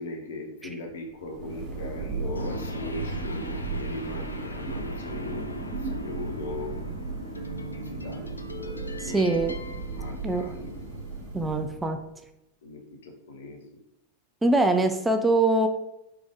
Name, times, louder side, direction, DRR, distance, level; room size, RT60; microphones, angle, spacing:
voice 1, 0.0-5.6 5.9-6.8 7.7-9.3 9.9-10.8 12.6-13.6, left 2 dB, 60° left, 3 dB, 0.8 m, -39 dB
Thunder, 1.0-12.1, right 3 dB, 35° right, 1.1 m, -35 dB
sound 1, 2.3-10.9, left 1 dB, 80° left, 0.4 m, -42 dB
voice 2, 9.0-9.6 10.2-10.5 11.3-12.0 14.4-15.7, right 2 dB, 10° right, 6 dB, 0.4 m, -23 dB
3.3 x 3.3 x 3.7 m, 0.86 s
figure-of-eight pair, 90°, 0 cm